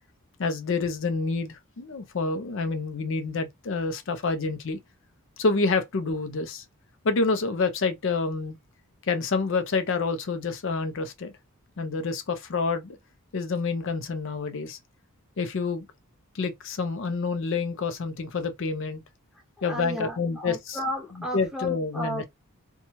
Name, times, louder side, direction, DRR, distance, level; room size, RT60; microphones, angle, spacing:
voice 1, 0.4-4.8 5.4-6.6 7.0-8.6 9.1-11.3 11.8-13.0 13.3-14.8 15.4-15.9 16.3-19.0 19.6-20.8 21.3-22.2, left 4 dB, 60° left, 0.5 m, -28 dB
voice 2, 19.6-22.2, equal, ahead, 0.6 m, -34 dB
2.9 x 2.2 x 2.6 m
head